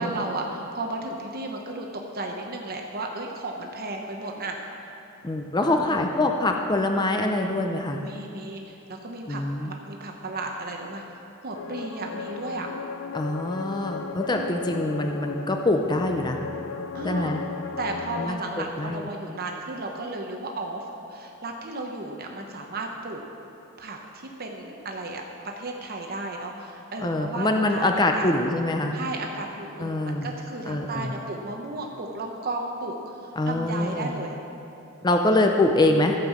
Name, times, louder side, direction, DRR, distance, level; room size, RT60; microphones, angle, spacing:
voice 1, 0.0-1.9 2.1-4.6 5.6-6.0 8.0-11.0 11.4-12.7 16.9-17.3 17.8-20.8 21.1-23.2 23.8-25.2 25.6-28.3 28.9-33.2 33.4-34.4, right 2 dB, 45° right, 1 dB, 0.9 m, -34 dB
voice 2, 5.2-8.0 9.3-9.7 13.1-16.4 17.0-17.4 18.2-19.1 27.0-29.0 29.8-30.3 30.7-31.1 33.4-34.1 35.0-36.2, left 2 dB, 20° left, 3 dB, 0.6 m, -24 dB
sound 1, 11.5-18.3, left 5 dB, 80° left, 0.5 m, -36 dB
15.0 x 5.6 x 7.3 m, 2.9 s
head